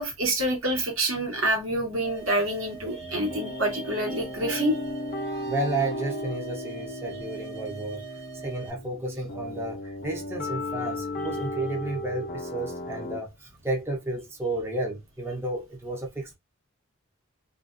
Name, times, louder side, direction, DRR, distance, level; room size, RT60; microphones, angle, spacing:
voice 1, 0.0-4.8, right 1 dB, 75° right, 1.1 m, -27 dB
sound 1, 2.0-8.7, right 8 dB, 60° right, 0.6 m, -43 dB
sound 2, 3.0-13.2, left 1 dB, 45° left, 0.5 m, -35 dB
voice 2, 5.5-8.1 8.3-16.3, right 2 dB, 10° right, 0.5 m, -32 dB
2.4 x 2.2 x 2.4 m
head